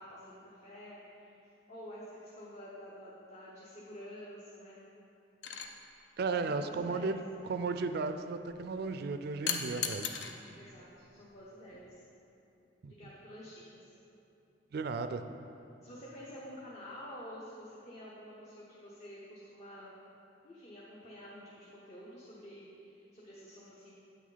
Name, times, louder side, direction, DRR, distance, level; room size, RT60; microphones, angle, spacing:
voice 1, 0.0-1.4 1.7-4.8 6.4-7.2 10.5-12.0 12.9-14.0 15.8-19.9 20.4-23.9, equal, 40° left, -6 dB, 0.9 m, -49 dB
sound 1, 5.4-5.7 9.5-10.3 11.7-11.9, left 7 dB, 70° left, 0.6 m, -35 dB
voice 2, 6.2-7.2 7.5-10.1 12.8-12.9 14.7-15.2, right 4 dB, 60° right, 9 dB, 0.4 m, -34 dB
8.5 x 6.2 x 3.9 m, 2.7 s
head